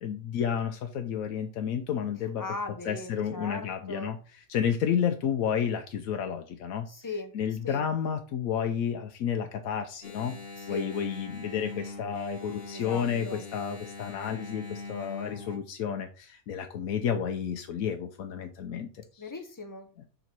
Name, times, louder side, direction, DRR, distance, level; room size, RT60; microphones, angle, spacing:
voice 1, 0.0-2.4 2.8-6.9 7.3-10.3 10.7-19.3, left 8 dB, 75° left, 5 dB, 1.1 m, -31 dB
voice 2, 2.4-4.1 6.9-7.3 7.6-7.9 10.6-10.9 12.7-13.4 19.2-20.0, left 2 dB, 20° left, 7 dB, 0.7 m, -38 dB
Engine, 10.0-15.6, left 3 dB, 45° left, 1.5 m, -41 dB
6.9 x 4.0 x 6.0 m, 0.39 s
omnidirectional pair, 1.5 m